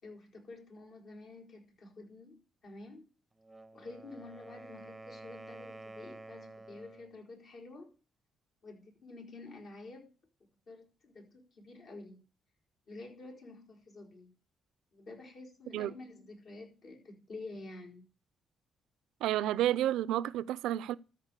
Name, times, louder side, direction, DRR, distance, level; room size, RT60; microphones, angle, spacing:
voice 1, 0.0-3.1 3.7-7.9 8.6-10.1 10.7-12.3 12.9-14.3 14.9-18.0, left 2 dB, 65° left, 4.6 m, -49 dB
Wind instrument woodwind instrument, 3.3-7.2, right 2 dB, 10° right, 0.7 m, -50 dB
voice 2, 19.2-21.0, right 12 dB, 90° right, 0.5 m, -30 dB
13.5 x 4.7 x 8.2 m
cardioid pair, 90°, 0 cm